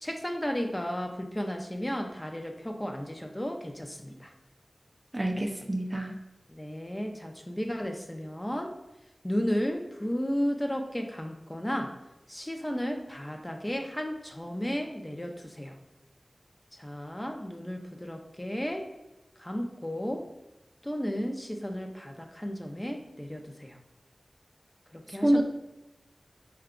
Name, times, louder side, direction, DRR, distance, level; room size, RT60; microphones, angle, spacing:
voice 1, 0.0-4.3 6.5-8.7 9.2-11.9 12.3-15.8 16.7-18.9 19.4-20.3 20.8-23.8 24.9-25.4, equal, 20° left, 3 dB, 0.6 m, -33 dB
voice 2, 5.1-6.2 25.2-25.4, right 1 dB, 30° right, 3 dB, 0.5 m, -26 dB
5.6 x 2.3 x 3.7 m, 0.98 s
wide cardioid pair, 50°, 0 cm